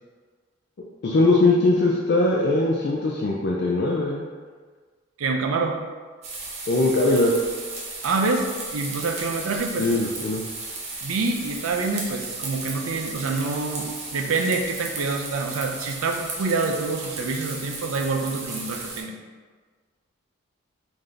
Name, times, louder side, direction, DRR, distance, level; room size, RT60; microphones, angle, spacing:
voice 1, 1.0-4.3 6.7-7.3 9.8-10.4, left 2 dB, 50° left, -3 dB, 0.3 m, -21 dB
voice 2, 5.2-5.8 8.0-9.9 11.0-19.1, right 3 dB, 90° right, 3 dB, 0.5 m, -26 dB
sound 1, 6.2-19.0, right 3 dB, 35° right, 0.6 m, -35 dB
3.3 x 2.6 x 3.8 m, 1.5 s
head